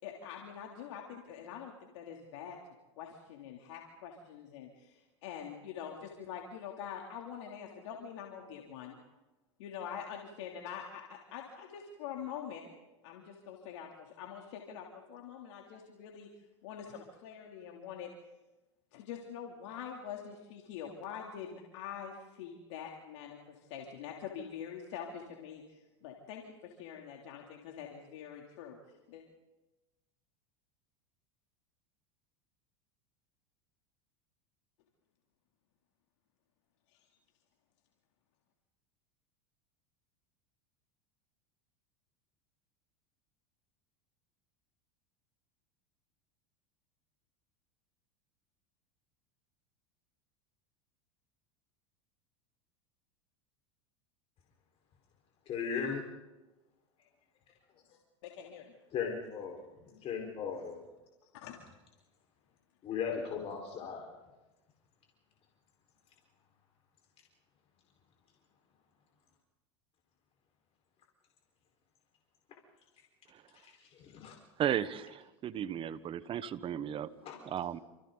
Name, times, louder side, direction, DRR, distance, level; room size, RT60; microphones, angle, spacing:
voice 1, 0.0-2.6 3.0-9.0 9.6-12.6 13.0-16.3 16.6-18.1 18.9-28.8 29.1-29.2 37.0-37.1 58.2-58.8 61.3-61.6, left 8 dB, 75° left, 0 dB, 3.2 m, -45 dB
voice 2, 55.4-56.0 58.9-59.6 59.8-60.8 62.8-64.1 73.5-74.3 77.2-77.4, left 6 dB, 40° left, 0 dB, 4.9 m, -37 dB
voice 3, 74.6-77.1 77.5-77.8, right 9 dB, 35° right, 14 dB, 1.2 m, -35 dB
28.5 x 27.5 x 4.1 m, 1.1 s
hypercardioid pair, 105°, 15 cm